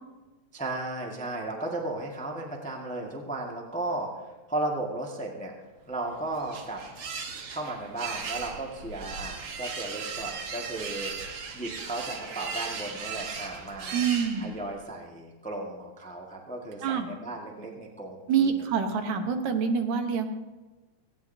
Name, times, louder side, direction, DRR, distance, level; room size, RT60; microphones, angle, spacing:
voice 1, 0.5-4.2 4.5-5.5 5.9-6.8 7.5-11.1 11.5-14.1 14.4-18.7, right 2 dB, 5° left, 0 dB, 0.7 m, -35 dB
sound 1, 5.9-14.8, right 5 dB, 60° right, 1.8 m, -38 dB
voice 2, 13.9-14.5 16.8-17.1 18.3-20.3, right 6 dB, 80° right, 6 dB, 2.4 m, -26 dB
17.5 x 16.0 x 2.7 m, 1.2 s
omnidirectional pair, 3.3 m